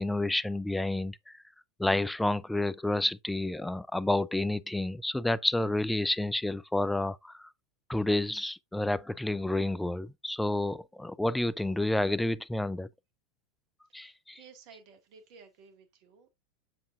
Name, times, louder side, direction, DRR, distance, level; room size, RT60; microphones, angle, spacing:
voice 1, 0.0-1.4 1.8-7.5 7.9-12.9 13.9-14.4, left 2 dB, 5° left, 0.4 m, -30 dB
voice 2, 13.9-16.3, right 5 dB, 50° right, 1.9 m, -55 dB
7.7 x 6.9 x 2.5 m
figure-of-eight pair, 85°, 0 cm